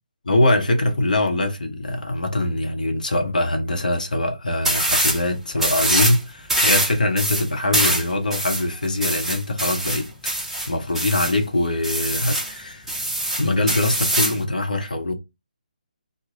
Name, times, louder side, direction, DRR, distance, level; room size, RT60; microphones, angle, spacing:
voice 1, 0.2-10.1 10.4-12.9 13.4-15.1, left 2 dB, 65° left, 0.9 m, -23 dB
sound 1, 4.6-5.2 5.6-6.2 6.5-11.4 11.8-12.5 12.9-14.4, right 1 dB, 5° right, 0.8 m, -23 dB
3.2 x 2.2 x 3.7 m
figure-of-eight pair, 145°, 5 cm